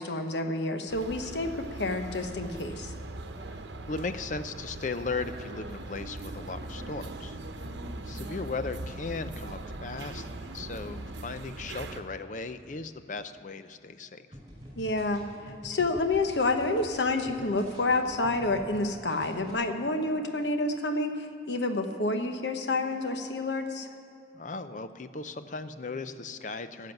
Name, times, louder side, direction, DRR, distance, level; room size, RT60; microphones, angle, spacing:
voice 1, 0.0-2.9 14.8-23.9, left 2 dB, 80° left, 6 dB, 1.0 m, -29 dB
sound 1, 0.9-12.0, right 2 dB, 85° right, 0.9 m, -40 dB
voice 2, 3.9-7.7 8.1-14.2 24.3-26.9, left 3 dB, 45° left, 11 dB, 0.5 m, -37 dB
sound 2, 14.3-18.8 19.1-19.5, equal, 25° right, 4.0 m, -47 dB
13.0 x 7.4 x 9.4 m, 2.8 s
head